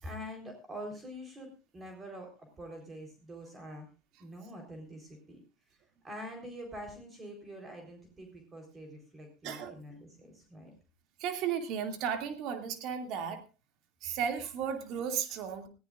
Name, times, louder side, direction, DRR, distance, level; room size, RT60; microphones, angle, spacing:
voice 1, 0.0-3.9 4.2-5.4 5.7-5.8 6.0-10.7, equal, 25° right, 3 dB, 4.1 m, -45 dB
voice 2, 11.2-13.4 14.0-15.7, right 7 dB, 55° right, 7 dB, 2.5 m, -34 dB
20.5 x 15.0 x 2.5 m, 0.32 s
hypercardioid pair, 75°, 0 cm